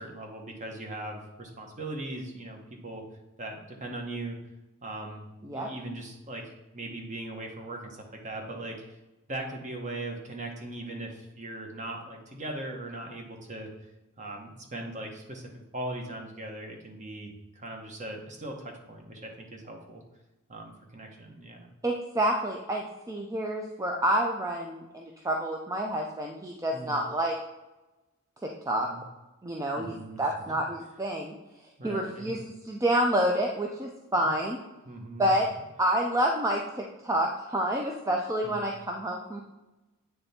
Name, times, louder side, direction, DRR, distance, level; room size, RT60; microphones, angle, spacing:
voice 1, 0.0-3.0 3.4-4.4 4.8-6.4 6.7-8.8 9.3-13.7 14.2-20.0 20.5-21.7 26.7-27.0 28.9-29.0 29.7-30.6 31.8-32.3 34.8-35.4 38.4-38.8, right 1 dB, 35° right, 2 dB, 1.0 m, -39 dB
voice 2, 21.8-27.3 28.4-28.9 29.4-31.3 31.8-34.6 35.2-35.5 35.8-39.4, right 1 dB, 15° right, 1 dB, 0.4 m, -28 dB
8.5 x 3.3 x 4.2 m, 1.0 s
head